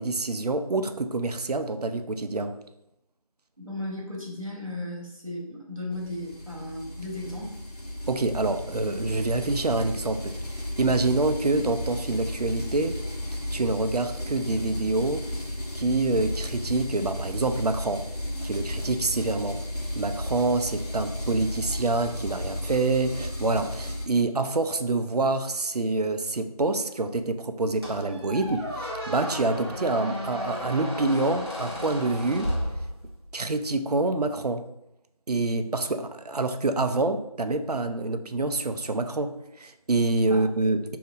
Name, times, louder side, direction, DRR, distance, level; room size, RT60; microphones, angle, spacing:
voice 1, 0.0-2.6 8.1-13.0 13.5-15.3 15.7-18.1 18.4-19.6 19.9-32.5 33.3-34.7 35.3-41.0, right 2 dB, 80° right, 8 dB, 0.4 m, -26 dB
voice 2, 3.6-7.5 40.3-40.4, left 1 dB, 60° right, -3 dB, 1.3 m, -35 dB
sound 1, 5.9-24.1, left 1 dB, 85° left, 1.0 m, -34 dB
Squeak, 27.8-33.3, equal, 40° right, 0.9 m, -34 dB
3.3 x 2.7 x 2.5 m, 0.83 s
figure-of-eight pair, 180°, 20 cm